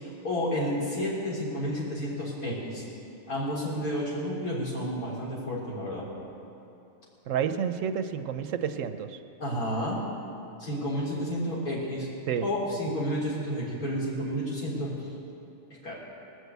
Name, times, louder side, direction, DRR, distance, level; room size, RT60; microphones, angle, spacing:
voice 1, 0.2-2.8 3.3-6.1 9.4-10.0 10.6-12.1 12.4-15.1 15.8-15.9, equal, 90° left, -7 dB, 4.1 m, -31 dB
voice 2, 7.3-9.2 12.3-12.4, right 8 dB, 70° right, 9 dB, 1.0 m, -30 dB
19.0 x 6.4 x 8.0 m, 2.7 s
omnidirectional pair, 1.5 m